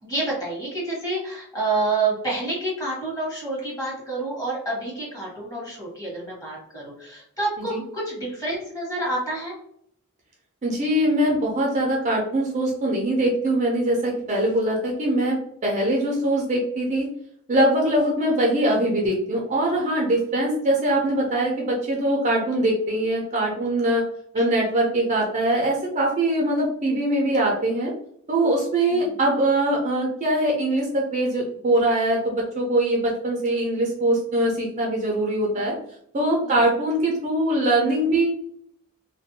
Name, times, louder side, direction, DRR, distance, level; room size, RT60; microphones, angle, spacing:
voice 1, 0.0-9.5 24.4-24.5 26.8-26.9 28.9-29.1 35.6-35.7 36.4-36.6, right 2 dB, 15° left, -6 dB, 1.2 m, -28 dB
voice 2, 10.6-15.4 15.6-17.1 17.5-24.0 24.3-27.9 28.3-35.7 36.1-38.3, right 1 dB, 30° right, -2 dB, 0.5 m, -22 dB
2.5 x 2.2 x 2.6 m, 0.68 s
head